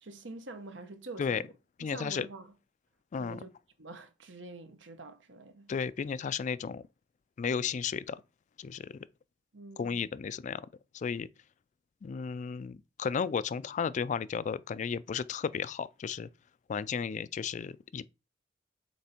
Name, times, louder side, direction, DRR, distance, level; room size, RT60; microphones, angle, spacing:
voice 1, 0.0-1.5 1.8-2.5 3.2-3.5 3.8-5.7 9.5-10.1, right 2 dB, 75° right, 1.1 m, -46 dB
voice 2, 1.8-2.3 3.1-3.4 5.7-6.8 7.4-8.2 8.6-9.1 9.8-10.6 10.9-11.3 12.0-16.3 16.7-18.1, left 6 dB, 40° left, 0.3 m, -34 dB
7.6 x 3.3 x 4.3 m
head